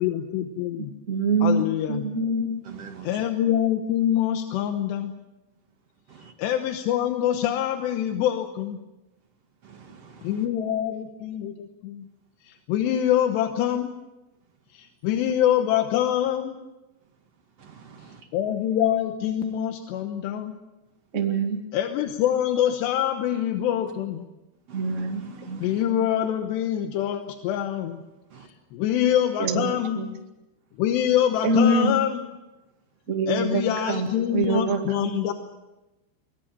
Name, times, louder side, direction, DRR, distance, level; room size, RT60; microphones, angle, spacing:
voice 1, 0.0-0.9 1.4-2.1 3.0-5.1 6.4-8.8 10.2-12.1 12.4-13.9 14.7-16.6 18.3-20.5 21.7-24.3 25.6-28.0 28.4-30.0 30.8-32.3 33.3-35.3, left 10 dB, 75° left, 6 dB, 2.9 m, -25 dB
voice 2, 1.1-2.6 21.1-21.6 24.7-26.1 29.4-30.1 31.4-31.9 33.1-34.1 34.3-35.2, right 2 dB, 80° right, 3 dB, 0.6 m, -25 dB
voice 3, 2.6-3.3 6.1-6.3 9.6-10.4 17.6-18.3 24.7-25.8 28.3-28.5, right 5 dB, 50° right, 4 dB, 1.9 m, -45 dB
23.5 x 20.5 x 7.6 m, 1.0 s
omnidirectional pair, 5.6 m